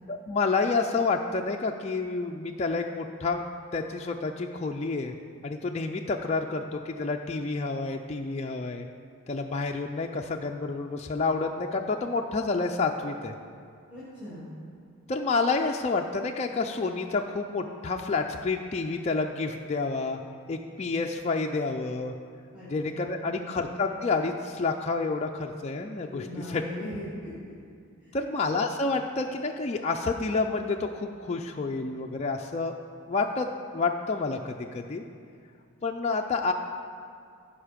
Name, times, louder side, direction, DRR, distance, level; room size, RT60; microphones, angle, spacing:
voice 1, 0.1-3.4 3.7-5.1 5.4-8.9 9.3-13.3 15.1-20.2 20.5-22.1 22.7-26.6 28.1-32.7 33.1-33.5 33.7-35.1 35.8-36.5, left 3 dB, 30° left, 2 dB, 0.4 m, -29 dB
voice 2, 13.9-14.5 22.5-23.5 26.0-27.5 28.0-28.3, left 1 dB, 5° right, -10 dB, 2.4 m, -40 dB
14.5 x 5.5 x 5.1 m, 2.3 s
head